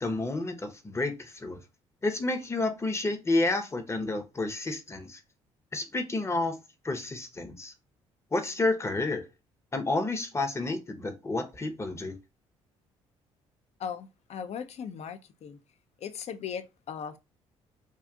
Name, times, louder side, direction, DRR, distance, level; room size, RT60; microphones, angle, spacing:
voice 1, 0.0-1.6 2.0-5.2 5.7-6.5 6.8-7.7 8.3-9.3 9.7-12.1, left 2 dB, 20° left, 0.8 m, -30 dB
voice 2, 13.8-15.6 16.0-17.2, left 7 dB, 50° left, 0.5 m, -38 dB
2.5 x 2.3 x 3.6 m
hypercardioid pair, 55°, 14 cm